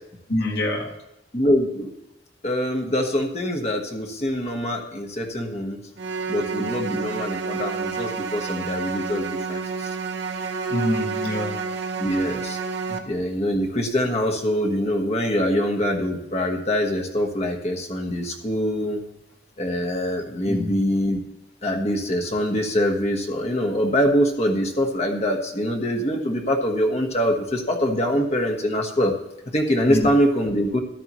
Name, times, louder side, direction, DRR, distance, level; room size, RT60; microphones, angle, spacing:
voice 1, 0.3-0.9 10.7-11.6 12.9-13.0 20.5-20.8 29.9-30.1, left 1 dB, 55° left, 1 dB, 1.9 m, -25 dB
voice 2, 1.3-1.9 2.4-5.8 6.3-10.0 12.0-12.6 13.1-19.0 19.6-21.2 21.6-29.1 29.5-30.8, equal, 35° left, 1 dB, 1.3 m, -24 dB
sound 1, 6.0-13.0, right 4 dB, 65° right, 0.9 m, -29 dB
13.5 x 10.5 x 3.1 m, 0.93 s
head